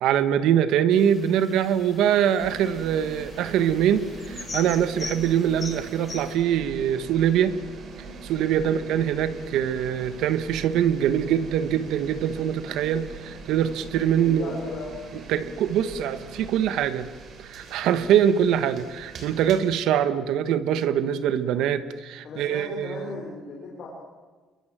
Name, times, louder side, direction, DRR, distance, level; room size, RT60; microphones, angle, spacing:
voice 1, 0.0-7.6 8.2-14.5 15.3-17.1 17.4-23.2, right 9 dB, 65° right, 12 dB, 1.5 m, -23 dB
sound 1, 0.9-6.3, left 4 dB, 20° left, 2.2 m, -41 dB
sound 2, 2.4-19.6, right 4 dB, 35° right, 3.4 m, -42 dB
voice 2, 14.2-15.0 22.2-23.9, left 3 dB, 40° left, -2 dB, 4.5 m, -37 dB
28.5 x 22.5 x 7.6 m, 1.4 s
cardioid pair, 180°, 0 cm